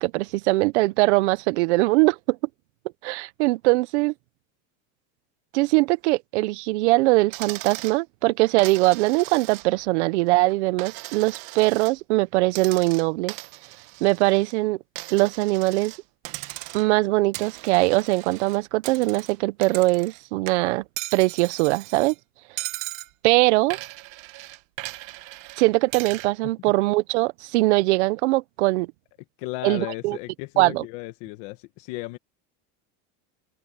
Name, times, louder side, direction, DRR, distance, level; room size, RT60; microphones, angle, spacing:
voice 1, 0.0-2.4 3.0-4.1 5.5-13.3 14.0-14.8 15.1-15.9 16.7-20.8 21.1-22.1 23.2-23.8 25.6-28.9 29.6-30.2 30.6-30.8, right 21 dB, 85° right, 0.8 m, -21 dB
Coin (dropping), 7.3-8.0 8.6-9.9 10.3-12.0 12.5-14.5 15.0-17.0 17.3-20.2 20.5-22.2 22.6-23.1 23.7-26.3, right 20 dB, 50° right, 1.5 m, -38 dB
voice 2, 29.4-32.2, left 19 dB, 50° left, 1.4 m, -35 dB
cardioid pair, 175°, 33 cm